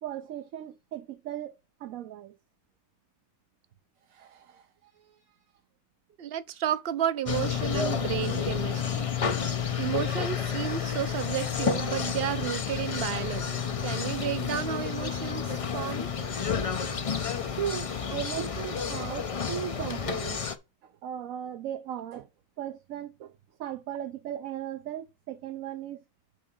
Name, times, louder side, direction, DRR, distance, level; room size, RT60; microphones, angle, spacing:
voice 1, 0.0-1.5 1.8-2.3 4.1-5.2 16.5-20.4 20.8-22.3 22.6-23.3 23.6-26.0, right 10 dB, 75° right, 1.1 m, -37 dB
voice 2, 6.2-9.1 9.8-16.1, right 10 dB, 55° right, 0.7 m, -32 dB
sound 1, 7.3-20.6, left 7 dB, 40° left, 0.4 m, -30 dB
6.4 x 4.5 x 5.2 m
omnidirectional pair, 1.4 m